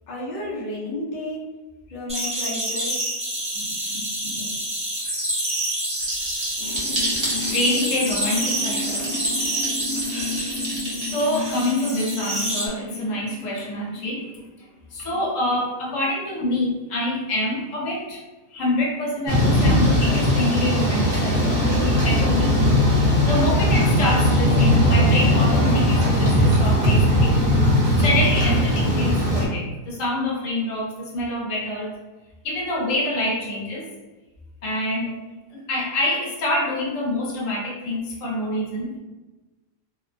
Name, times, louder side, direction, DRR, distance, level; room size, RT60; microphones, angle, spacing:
voice 1, 0.1-1.4 1.9-3.0, left 1 dB, 90° left, -4 dB, 0.4 m, -31 dB
sound 1, 2.1-12.7, right 1 dB, 5° right, 0.5 m, -28 dB
voice 2, 3.5-4.5 6.6-18.2 18.5-22.6 23.2-27.5 28.0-31.9 32.4-33.9 34.6-35.2 35.5-39.0, left 1 dB, 60° left, -3 dB, 1.0 m, -26 dB
sound 2, 6.0-11.6, right 2 dB, 70° right, 0.3 m, -31 dB
Thunder / Rain, 19.3-29.4, equal, 35° right, 0.8 m, -19 dB
2.8 x 2.1 x 2.5 m, 1.2 s
omnidirectional pair, 1.8 m